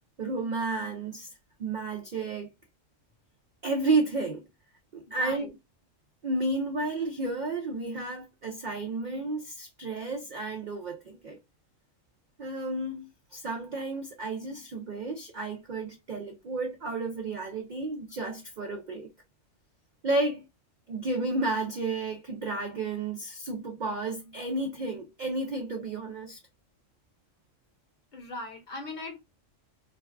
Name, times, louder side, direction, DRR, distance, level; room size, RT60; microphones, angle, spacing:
voice 1, 0.2-1.3 1.6-2.5 3.6-4.5 4.9-5.5 6.2-11.4 12.4-19.1 20.0-20.5 20.9-26.4, right 2 dB, 75° right, 0.4 m, -32 dB
voice 2, 5.1-5.5 28.1-29.2, left 2 dB, 40° left, 0.8 m, -39 dB
2.5 x 2.2 x 2.3 m
omnidirectional pair, 1.4 m